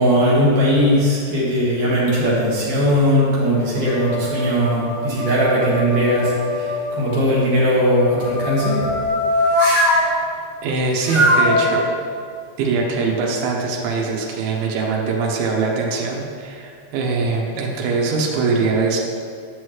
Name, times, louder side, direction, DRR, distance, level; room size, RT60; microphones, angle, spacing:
voice 1, 0.0-8.9, equal, 55° right, -7 dB, 2.6 m, -18 dB
sound 1, 1.6-2.5 3.1-7.0 7.9-10.1 11.0-11.6, left 1 dB, 45° left, 2.7 m, -22 dB
voice 2, 10.6-12.0 12.6-19.0, right 4 dB, 90° right, -1 dB, 3.2 m, -22 dB
11.0 x 6.4 x 3.1 m, 2.3 s
omnidirectional pair, 5.3 m